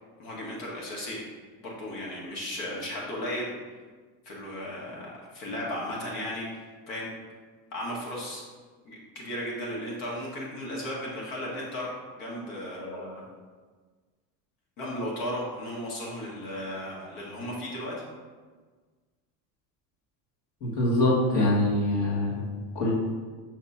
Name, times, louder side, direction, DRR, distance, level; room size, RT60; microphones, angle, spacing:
voice 1, 0.2-1.2 1.6-3.5 4.3-7.1 7.7-8.4 8.9-11.9 12.2-13.2 14.8-18.0, left 1 dB, 75° left, -4 dB, 1.7 m, -35 dB
voice 2, 20.6-22.5 22.8-22.9, left 1 dB, 50° left, -6 dB, 1.7 m, -24 dB
5.9 x 3.1 x 5.6 m, 1.4 s
cardioid pair, 160°, 38 cm